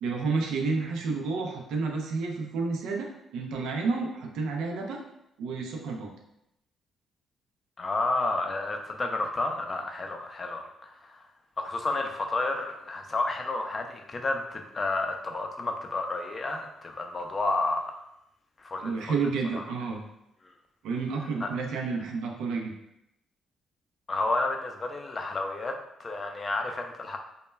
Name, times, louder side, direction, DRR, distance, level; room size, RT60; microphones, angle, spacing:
voice 1, 0.0-5.0 5.4-6.1 18.8-20.0 20.8-22.7, right 4 dB, 85° right, 1 dB, 0.4 m, -30 dB
voice 2, 7.8-11.3 11.6-18.0 18.6-19.1 19.5-19.6 21.4-21.5 24.1-27.2, left 2 dB, 35° left, 4 dB, 0.4 m, -31 dB
2.1 x 2.1 x 3.2 m, 0.82 s
cardioid pair, 90°, 0 cm